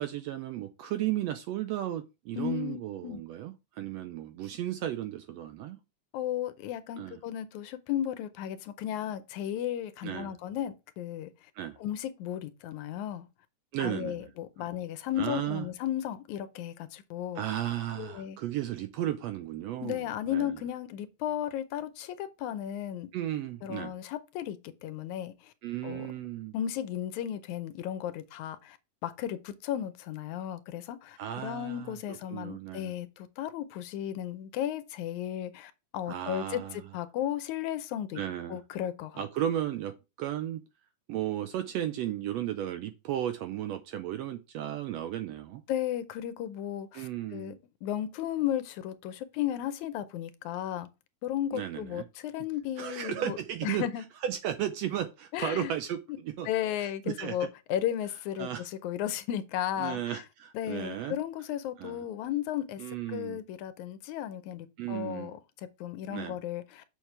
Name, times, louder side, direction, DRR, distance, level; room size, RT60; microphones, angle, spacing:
voice 1, 0.0-5.8 7.0-7.2 10.0-10.3 11.5-11.8 13.7-14.3 14.6-14.7 15.2-15.7 17.3-20.6 23.1-23.9 25.6-26.5 31.2-32.0 32.3-32.9 36.1-36.8 38.1-38.6 39.2-40.6 41.1-45.6 46.9-47.6 51.5-52.0 52.8-53.8 54.2-56.5 56.8-57.5 58.4-58.7 59.8-61.2 61.8-62.0 62.8-63.4 64.8-65.3 66.1-66.4, right 11 dB, 80° right, 1.5 m, -34 dB
voice 2, 2.4-3.2 6.1-11.5 11.8-13.3 13.8-17.4 18.0-18.4 19.8-23.1 23.6-25.5 25.8-26.1 26.5-28.8 29.0-38.2 38.5-39.2 45.7-50.9 51.2-53.4 53.6-54.0 55.3-55.7 56.5-60.2 60.5-66.8, left 11 dB, 80° left, 2.0 m, -35 dB
6.6 x 6.5 x 3.3 m
omnidirectional pair, 3.4 m